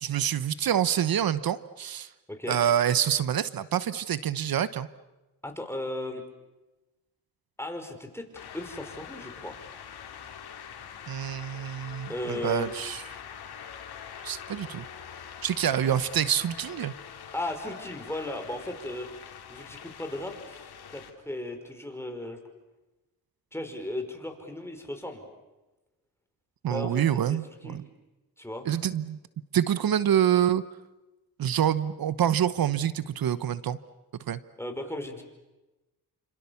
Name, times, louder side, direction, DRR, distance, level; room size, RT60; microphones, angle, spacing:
voice 1, 0.0-2.1 2.5-4.9 11.1-13.0 14.2-14.9 15.4-16.9 26.6-27.8 28.6-29.2 29.5-30.6 31.4-33.8 34.3-34.4, right 10 dB, 65° right, 15 dB, 1.1 m, -26 dB
voice 2, 2.3-2.6 5.4-6.2 7.6-8.3 8.5-9.6 12.1-12.7 17.3-19.1 19.5-22.4 23.5-25.2 26.7-27.8 28.4-28.7 34.6-35.2, left 1 dB, 5° left, 5 dB, 5.2 m, -36 dB
sound 1, 8.3-21.1, left 8 dB, 75° left, 3.1 m, -44 dB
28.5 x 27.0 x 7.2 m, 1.1 s
cardioid pair, 75°, 38 cm